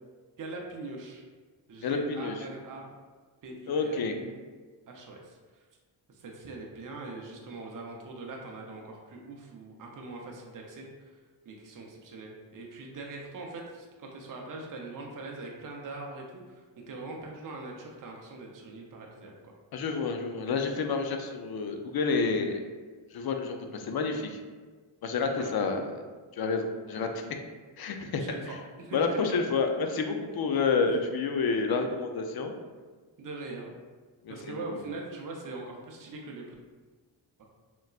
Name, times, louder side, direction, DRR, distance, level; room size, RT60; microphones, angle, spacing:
voice 1, 0.4-1.2 1.7-2.9 3.4-4.4 4.9-5.4 6.1-11.2 11.5-19.5 25.3-25.5 26.9-27.2 28.2-28.5 28.8-29.3 30.8-30.9 33.2-33.7 34.3-36.4, right 3 dB, 40° right, 0 dB, 0.6 m, -42 dB
voice 2, 1.8-2.3 3.7-4.1 19.7-22.6 23.1-24.4 25.0-25.8 26.3-27.2 27.8-28.6 28.9-32.5 34.2-34.8, left 4 dB, 50° left, 5 dB, 0.5 m, -29 dB
3.9 x 2.2 x 2.3 m, 1.4 s
cardioid pair, 45°, 49 cm